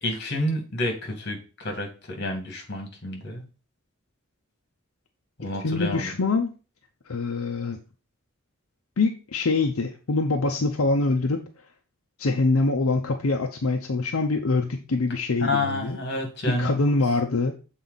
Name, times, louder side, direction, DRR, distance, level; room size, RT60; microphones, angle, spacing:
voice 1, 0.0-3.5 5.4-6.1 15.4-16.8, left 1 dB, 50° left, 3 dB, 2.0 m, -29 dB
voice 2, 5.6-6.5 7.1-7.8 9.0-11.4 12.2-16.0 16.4-17.5, left 3 dB, 80° left, 3 dB, 0.7 m, -24 dB
7.5 x 4.1 x 4.0 m, 0.34 s
head